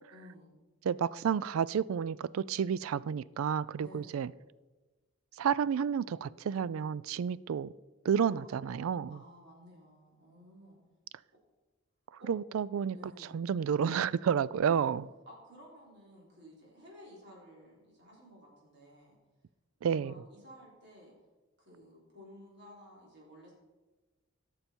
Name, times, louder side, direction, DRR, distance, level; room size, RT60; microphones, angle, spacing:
voice 1, 0.1-0.5 3.8-4.2 8.2-8.6 9.1-10.8 12.2-12.3 12.9-13.5 14.6-14.9 15.3-19.2 19.8-21.1 21.6-23.5, equal, 55° right, -4 dB, 3.5 m, -54 dB
voice 2, 0.8-4.3 5.4-7.7 8.0-9.2 12.3-13.0 13.3-15.0 19.8-20.1, right 7 dB, 85° right, 20 dB, 0.3 m, -30 dB
17.0 x 6.9 x 4.5 m, 1.2 s
head